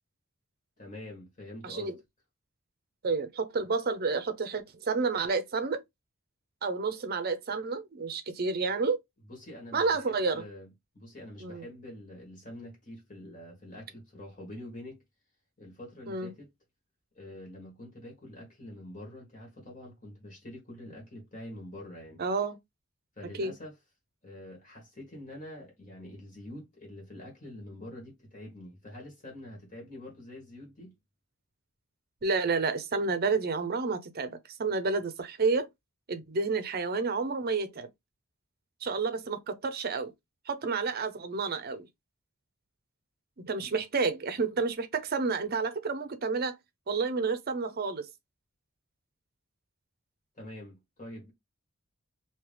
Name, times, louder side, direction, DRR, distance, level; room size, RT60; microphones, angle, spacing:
voice 1, 0.8-1.9 9.3-10.7 10.9-15.0 15.6-16.5 17.1-22.2 23.1-23.7 24.2-30.9 50.3-51.3, left 1 dB, 40° left, 1.7 m, -46 dB
voice 2, 1.6-1.9 3.0-5.8 6.6-9.0 9.7-10.4 11.4-11.7 16.1-16.3 22.2-22.6 23.4-23.5 32.2-35.7 36.1-37.9 38.8-40.1 40.5-41.9 43.4-46.5 46.9-48.1, right 4 dB, 50° right, 0.6 m, -30 dB
3.1 x 2.9 x 3.3 m
head